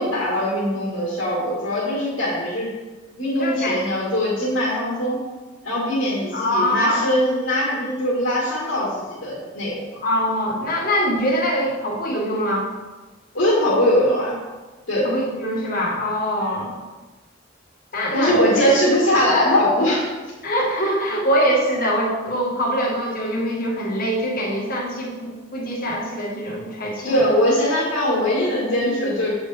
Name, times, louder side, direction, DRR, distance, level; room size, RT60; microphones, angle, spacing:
voice 1, 0.0-2.7 3.2-5.2 5.6-9.9 13.3-14.3 14.9-15.1 16.4-16.5 18.1-20.0 27.0-29.3, equal, 85° left, -6 dB, 1.8 m, -21 dB
voice 2, 3.4-3.8 6.3-7.0 10.0-12.7 15.0-16.7 17.9-18.4 20.4-27.2, equal, 50° left, -2 dB, 1.4 m, -23 dB
7.0 x 4.8 x 3.5 m, 1.2 s
head